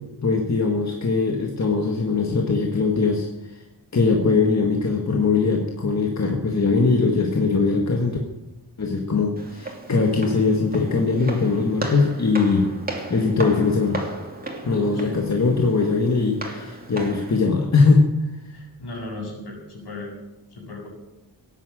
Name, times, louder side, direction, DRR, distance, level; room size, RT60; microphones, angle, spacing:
voice 1, 0.2-3.3 3.9-8.2 8.8-12.7 13.1-14.0 14.6-18.1, left 4 dB, 40° left, 1 dB, 1.8 m, -21 dB
Walk footsteps, 9.4-17.4, right 2 dB, 20° right, 2.7 m, -35 dB
voice 2, 14.8-15.2 18.5-20.2 20.5-20.9, left 2 dB, 75° left, -2 dB, 7.1 m, -36 dB
17.5 x 10.0 x 7.9 m, 0.97 s
wide cardioid pair, 140°, 40 cm